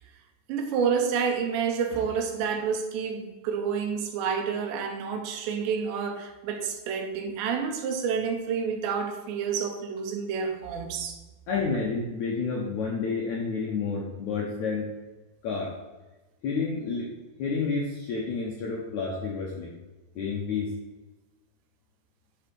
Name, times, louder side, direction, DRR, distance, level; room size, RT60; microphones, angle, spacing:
voice 1, 0.5-11.2, right 6 dB, 85° right, 5 dB, 3.4 m, -29 dB
voice 2, 11.5-14.9 15.4-15.8 16.4-17.1 17.4-19.7 20.2-20.7, left 4 dB, 70° left, -2 dB, 1.8 m, -30 dB
10.0 x 5.6 x 5.4 m, 1.1 s
omnidirectional pair, 4.9 m